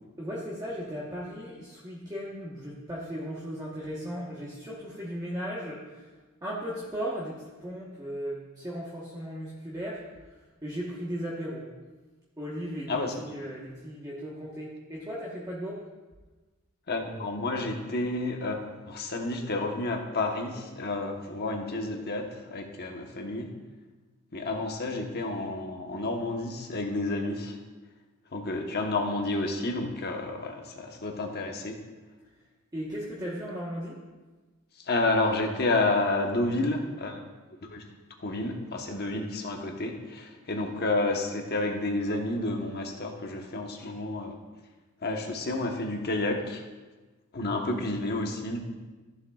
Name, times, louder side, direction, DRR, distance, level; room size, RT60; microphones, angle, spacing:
voice 1, 0.2-6.1 6.4-10.0 10.6-11.7 12.4-15.8 32.7-34.0, equal, 15° right, -6 dB, 1.2 m, -36 dB
voice 2, 16.9-23.5 24.3-27.6 28.3-31.8 34.8-37.2 37.7-37.8 38.2-44.3 45.0-46.6 47.3-48.6, left 2 dB, 50° left, 2 dB, 1.1 m, -30 dB
14.0 x 7.2 x 2.4 m, 1.2 s
head